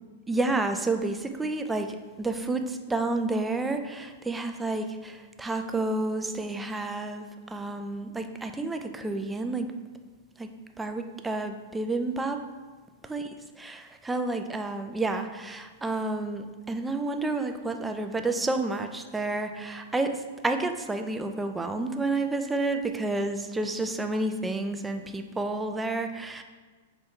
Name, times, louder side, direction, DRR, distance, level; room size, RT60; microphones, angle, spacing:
voice 1, 0.3-9.7 10.4-10.5 10.8-12.4 13.1-13.2 13.6-26.4, right 2 dB, 10° right, 6 dB, 0.3 m, -30 dB
5.3 x 2.2 x 4.3 m, 1.4 s
hypercardioid pair, 140°, 0 cm